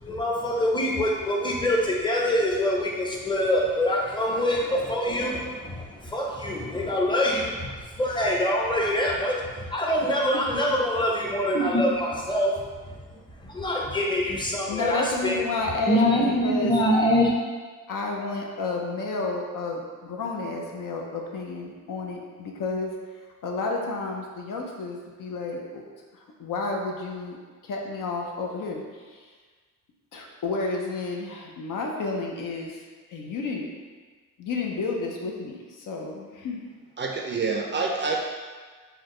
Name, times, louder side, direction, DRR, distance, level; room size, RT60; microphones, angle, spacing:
voice 1, 0.0-12.6 12.9-13.0 13.4-15.4 15.9-17.3, left 1 dB, 15° left, -2 dB, 0.6 m, -24 dB
voice 2, 14.7-16.7 17.9-22.9 23.4-25.8 26.1-27.4 27.6-29.2 30.1-32.8 33.1-33.7 34.4-36.6, left 3 dB, 70° left, 0 dB, 0.7 m, -31 dB
voice 3, 37.0-38.2, right 4 dB, 35° right, 0 dB, 0.4 m, -27 dB
4.5 x 2.2 x 3.7 m, 1.5 s
cardioid pair, 120°, 33 cm